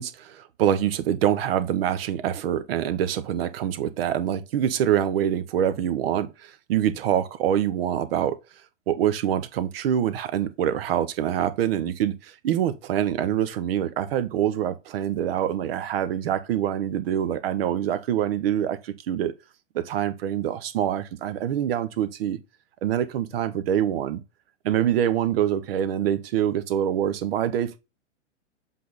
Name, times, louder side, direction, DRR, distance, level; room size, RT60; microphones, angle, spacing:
voice 1, 0.0-8.4 8.9-19.3 19.7-22.4 22.8-24.2 24.6-27.8, right 10 dB, 50° right, 1.0 m, -25 dB
7.5 x 3.6 x 4.0 m
figure-of-eight pair, 105°, 36 cm